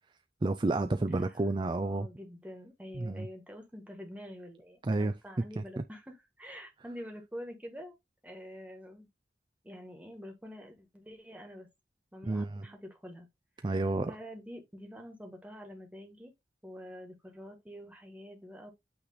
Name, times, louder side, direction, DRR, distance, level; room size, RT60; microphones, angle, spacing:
voice 1, 0.4-2.1 3.0-3.3 4.8-5.1 5.6-5.7 12.2-12.7 13.6-14.2, right 2 dB, 25° right, 0.4 m, -30 dB
voice 2, 1.1-1.5 1.8-8.0 8.2-9.1 9.6-11.7 12.1-13.3 13.6-16.3 16.6-18.7, equal, 10° right, 1.5 m, -47 dB
8.5 x 3.3 x 3.9 m
head